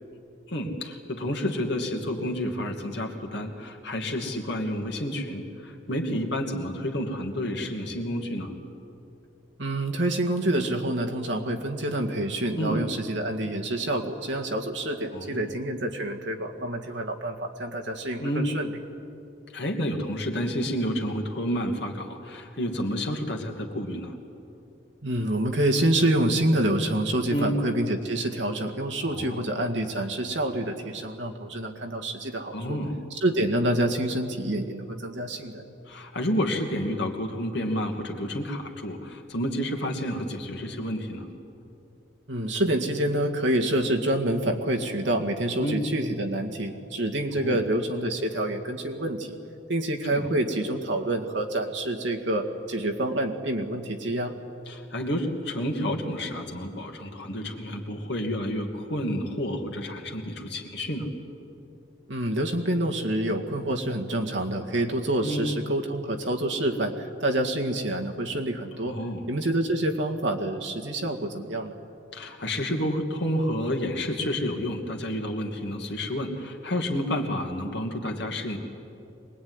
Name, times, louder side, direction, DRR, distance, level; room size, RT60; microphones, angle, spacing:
voice 1, 0.5-8.5 12.6-12.8 15.1-15.5 18.2-18.5 19.5-24.1 27.3-27.6 29.0-29.4 32.5-33.0 35.9-41.3 45.6-45.8 47.3-47.6 50.1-50.3 54.7-61.1 65.2-65.5 68.8-69.2 72.1-78.6, equal, 55° left, 2 dB, 2.6 m, -30 dB
voice 2, 9.6-18.7 25.0-32.8 33.2-35.6 42.3-49.4 49.7-54.3 62.1-69.0 69.3-71.8, right 1 dB, 60° right, 2 dB, 2.1 m, -27 dB
24.0 x 20.5 x 9.7 m, 2.7 s
head